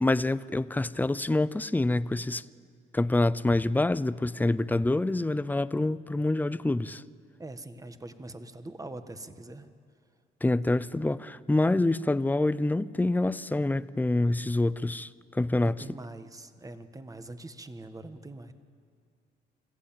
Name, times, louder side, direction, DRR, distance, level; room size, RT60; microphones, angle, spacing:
voice 1, 0.0-2.4 2.9-7.0 10.4-15.8, left 2 dB, 10° left, 0.6 m, -26 dB
voice 2, 7.4-9.7 15.6-18.5, right 2 dB, 15° right, 1.5 m, -43 dB
27.0 x 15.0 x 8.9 m
cardioid pair, 90°, 20 cm